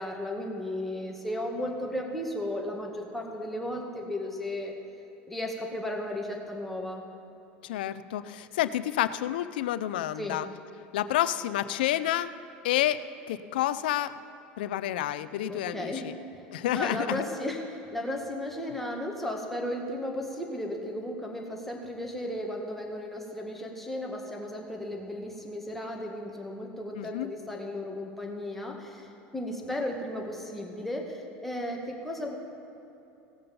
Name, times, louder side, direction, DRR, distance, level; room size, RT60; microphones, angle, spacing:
voice 1, 0.0-4.7 5.3-7.0 10.2-10.4 15.5-16.1 16.7-29.1 29.3-32.4, left 1 dB, 5° left, 0 dB, 1.9 m, -35 dB
voice 2, 7.6-10.5 10.9-12.3 12.6-13.0 13.3-14.1 14.6-16.1 16.5-17.2 26.9-27.3, left 13 dB, 85° left, 14 dB, 0.5 m, -29 dB
18.0 x 6.8 x 5.4 m, 2.8 s
supercardioid pair, 100°, 5 cm